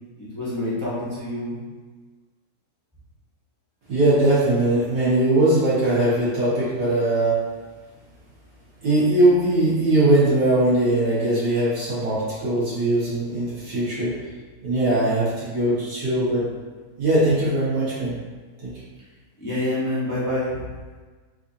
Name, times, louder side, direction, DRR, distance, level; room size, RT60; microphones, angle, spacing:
voice 1, 0.2-1.6 19.4-20.6, left 1 dB, 20° left, -9 dB, 0.6 m, -27 dB
voice 2, 3.9-7.4 8.8-14.1 14.6-16.5 17.0-18.2 18.6-18.7, right 1 dB, 80° right, -10 dB, 2.1 m, -20 dB
4.5 x 2.6 x 2.7 m, 1.4 s
omnidirectional pair, 1.7 m